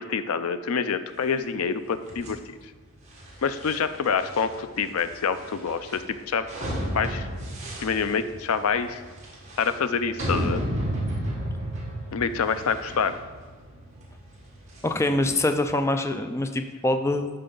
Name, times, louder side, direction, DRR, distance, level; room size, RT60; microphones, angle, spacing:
voice 1, 0.0-2.4 3.4-6.5 6.9-7.3 7.8-9.0 9.6-10.6 12.1-13.2, left 6 dB, 90° left, 12 dB, 0.5 m, -26 dB
sound 1, 2.1-15.3, equal, 35° right, 1.9 m, -34 dB
voice 2, 14.8-17.3, left 2 dB, 15° left, 7 dB, 0.3 m, -24 dB
12.0 x 4.5 x 3.9 m, 1.4 s
head